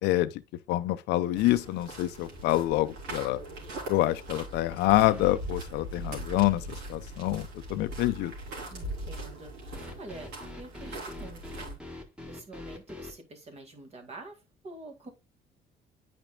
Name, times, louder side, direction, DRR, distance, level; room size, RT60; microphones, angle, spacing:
voice 1, 0.0-0.4 0.7-3.4 3.9-6.6 6.9-8.3, left 16 dB, 85° left, 0.5 m, -26 dB
sound 1, 1.3-11.7, right 1 dB, 85° right, 3.5 m, -40 dB
sound 2, 4.9-5.4 9.7-13.2, left 1 dB, 5° right, 1.5 m, -44 dB
voice 2, 8.7-11.8 12.3-15.1, right 2 dB, 40° right, 2.0 m, -47 dB
9.0 x 5.2 x 2.3 m
cardioid pair, 110°, 17 cm